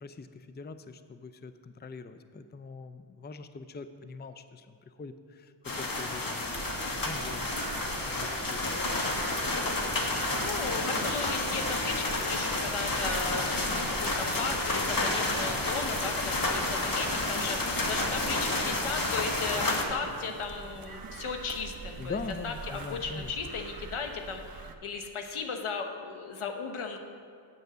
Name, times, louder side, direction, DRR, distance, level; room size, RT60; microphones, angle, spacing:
voice 1, 0.0-6.6 7.0-9.2 22.0-23.3, left 4 dB, 20° left, 10 dB, 0.5 m, -43 dB
sound 1, 5.6-19.8, left 2 dB, 40° left, 1.6 m, -30 dB
sound 2, 6.5-24.7, right 4 dB, 45° right, 0.9 m, -43 dB
voice 2, 10.4-22.2 22.4-27.0, left 5 dB, 80° left, 5 dB, 1.2 m, -36 dB
8.7 x 8.2 x 6.8 m, 2.4 s
cardioid pair, 55°, 49 cm